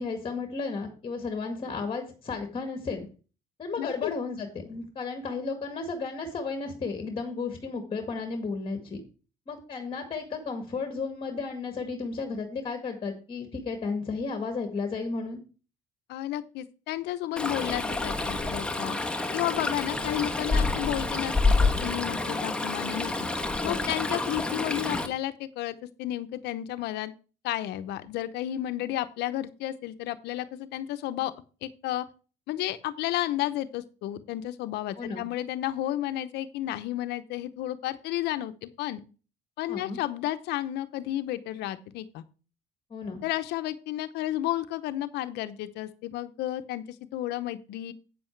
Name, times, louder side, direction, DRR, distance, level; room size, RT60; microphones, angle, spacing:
voice 1, 0.0-3.1 3.6-9.0 9.5-15.4 23.6-23.8 35.0-35.3 39.7-40.0 42.9-43.2, left 4 dB, 30° left, 6 dB, 1.8 m, -33 dB
voice 2, 3.8-4.1 16.1-19.0 19.3-23.3 23.6-27.1 27.4-31.3 31.6-32.1 32.5-39.0 39.6-42.2 43.2-47.9, left 13 dB, 85° left, 13 dB, 0.8 m, -32 dB
Stream, 17.4-25.1, left 3 dB, 5° left, 1.3 m, -28 dB
8.7 x 7.8 x 4.5 m, 0.35 s
cardioid pair, 110°, 17 cm